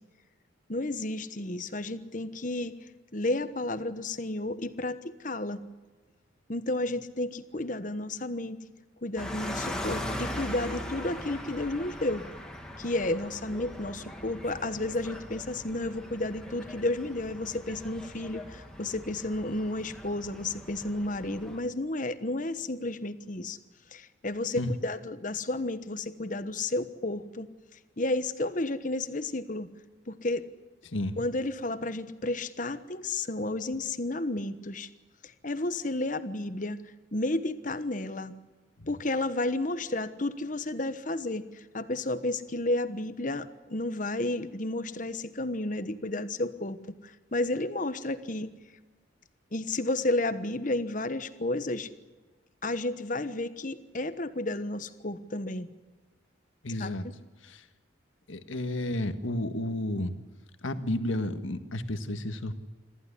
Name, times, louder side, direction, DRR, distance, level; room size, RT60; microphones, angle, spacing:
voice 1, 0.7-2.7 3.1-5.6 6.5-8.6 9.0-12.2 12.8-23.6 23.9-27.5 28.0-29.7 30.1-30.4 31.2-34.9 35.2-36.8 37.1-38.3 38.9-48.5 49.5-51.9 52.6-55.7 56.8-57.1, left 2 dB, 40° left, 12 dB, 1.2 m, -32 dB
sound 1, 9.2-21.6, left 1 dB, 5° left, 2.3 m, -40 dB
voice 2, 30.9-31.2 38.8-38.9 56.6-57.0 57.4-57.7 58.3-60.2 60.6-62.5, left 1 dB, 85° left, 9 dB, 1.6 m, -32 dB
25.5 x 14.5 x 9.9 m, 1.3 s
head